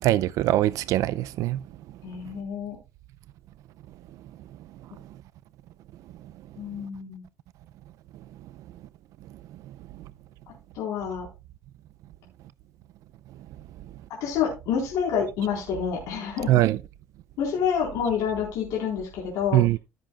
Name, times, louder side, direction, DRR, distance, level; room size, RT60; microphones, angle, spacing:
voice 1, 0.0-1.6 9.7-9.8 16.5-16.8 19.5-19.8, right 14 dB, 75° right, 0.4 m, -22 dB
voice 2, 2.0-2.8 4.9-5.0 6.6-7.2 10.7-11.3 14.2-16.5 17.4-19.6, left 7 dB, 80° left, 3.9 m, -28 dB
15.5 x 7.7 x 2.3 m
cardioid pair, 125°, 6 cm